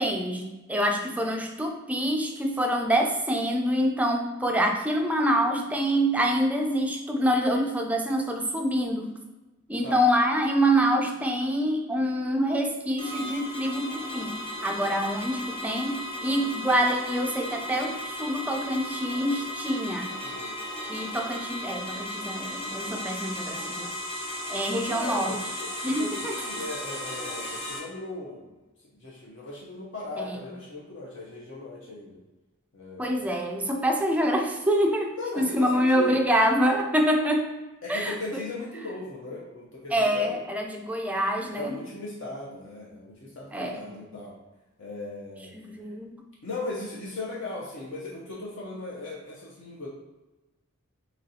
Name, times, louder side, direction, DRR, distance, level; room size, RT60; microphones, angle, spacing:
voice 1, 0.0-9.1 9.7-20.1 20.9-23.9 24.5-25.4 25.8-26.4 30.1-30.4 33.0-37.5 37.9-38.1 39.9-41.7 43.5-43.9 45.5-46.2, equal, 5° right, 3 dB, 0.3 m, -26 dB
sound 1, 13.0-27.8, left 1 dB, 25° left, 0.8 m, -35 dB
voice 2, 20.2-20.5 24.9-28.5 29.0-32.2 32.7-33.3 35.2-36.2 37.8-40.4 41.5-44.4 44.8-45.5 46.4-49.9, left 2 dB, 60° left, -4 dB, 0.7 m, -37 dB
4.0 x 3.1 x 2.7 m, 1.1 s
head